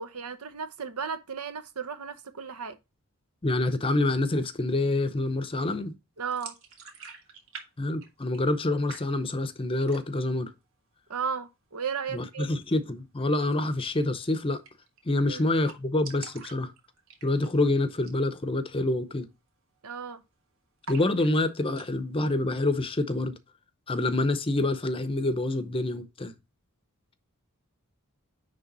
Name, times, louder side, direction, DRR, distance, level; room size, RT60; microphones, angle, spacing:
voice 1, 0.0-2.8 6.2-6.5 11.1-12.5 15.2-15.5 19.8-20.2, right 6 dB, 80° right, 0.9 m, -34 dB
voice 2, 3.4-5.9 7.8-10.5 12.1-14.6 15.0-16.7 17.2-19.3 20.9-23.4 23.9-26.3, left 2 dB, 25° left, 0.7 m, -27 dB
sound 1, 6.3-7.7 7.9-8.6 8.9-9.5 9.8-10.3 10.7-10.8 11.1-11.7 13.4-13.6 13.9-14.0 14.2-14.3 14.6-15.0 15.3-15.4 15.5-17.6 17.9-18.2 18.6-18.7 19.2-19.5 19.7-20.3 20.8-21.9, right 5 dB, 60° right, 1.7 m, -46 dB
10.0 x 3.4 x 3.9 m
head